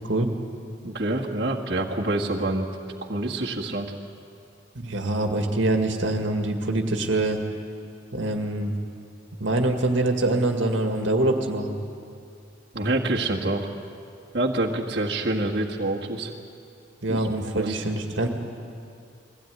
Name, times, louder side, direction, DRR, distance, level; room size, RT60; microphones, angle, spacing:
voice 1, 0.8-2.7 3.0-3.9 12.7-13.7 14.3-16.3 17.1-17.3 17.5-17.8, right 2 dB, 60° right, -4 dB, 1.7 m, -26 dB
voice 2, 4.8-7.4 8.1-8.7 9.4-11.8 17.0-18.3, right 2 dB, 80° right, 3 dB, 2.0 m, -24 dB
22.0 x 16.5 x 9.4 m, 2.4 s
head